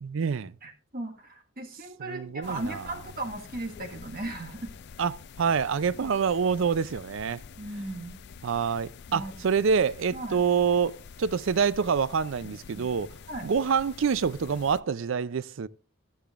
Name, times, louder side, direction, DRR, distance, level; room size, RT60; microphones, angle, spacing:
voice 1, 0.0-0.5 2.0-2.8 5.0-7.4 8.4-13.1 13.4-15.7, right 6 dB, 65° right, 0.4 m, -26 dB
voice 2, 0.6-4.7 6.0-6.1 7.6-8.2 9.1-9.3 10.1-10.4 13.3-13.5, right 2 dB, 45° right, 1.6 m, -37 dB
sound 1, 2.4-14.8, left 6 dB, 50° left, 0.4 m, -47 dB
13.5 x 10.0 x 2.5 m
head